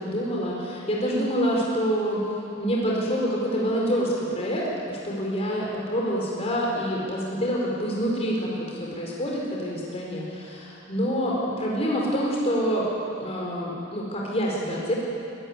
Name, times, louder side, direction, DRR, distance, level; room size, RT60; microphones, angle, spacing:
voice 1, 0.0-2.2 2.6-4.6 4.9-12.9 13.2-14.9, equal, 30° left, -3 dB, 4.6 m, -26 dB
24.5 x 15.0 x 9.8 m, 2.7 s
head